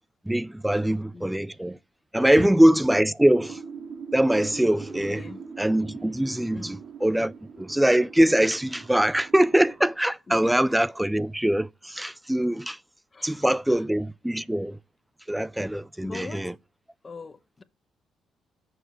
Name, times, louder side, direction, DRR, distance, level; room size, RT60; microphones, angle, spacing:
voice 1, 0.3-1.8 2.1-3.6 4.1-5.2 5.6-12.8 13.2-14.8 15.3-16.5, right 1 dB, 5° right, 0.3 m, -23 dB
sound 1, 3.2-9.9, right 5 dB, 55° right, 1.3 m, -42 dB
voice 2, 5.1-5.4 6.5-6.8 10.3-10.6 13.1-13.8 16.0-16.5 17.0-17.6, left 4 dB, 30° left, 0.7 m, -40 dB
6.9 x 5.0 x 6.3 m
cardioid pair, 90°, 0 cm